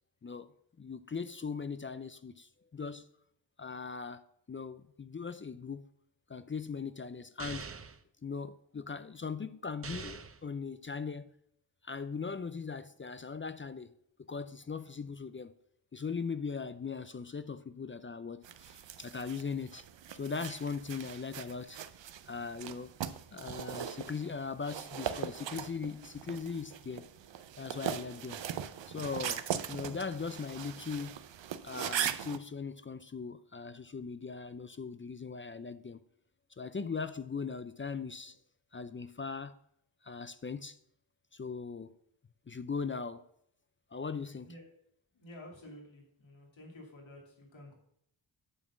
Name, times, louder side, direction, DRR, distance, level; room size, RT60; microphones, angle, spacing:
voice 1, 0.2-0.5 0.8-3.1 3.6-5.9 6.3-7.7 8.2-11.3 11.8-13.9 14.3-15.6 15.9-19.8 20.1-21.8 22.3-22.9 23.3-27.1 27.6-28.4 28.9-31.2 31.6-36.0 36.6-38.4 38.7-39.6 40.0-40.8 41.3-42.0 42.5-43.2 43.9-44.5, left 5 dB, 30° left, 0.4 m, -39 dB
sound 1, 7.4-8.0 9.8-10.4, right 5 dB, 30° right, 0.6 m, -43 dB
sound 2, 18.4-32.4, right 9 dB, 75° right, 0.6 m, -40 dB
voice 2, 45.1-47.7, left 1 dB, 85° left, 2.5 m, -51 dB
8.9 x 4.3 x 7.2 m
wide cardioid pair, 75°, 45 cm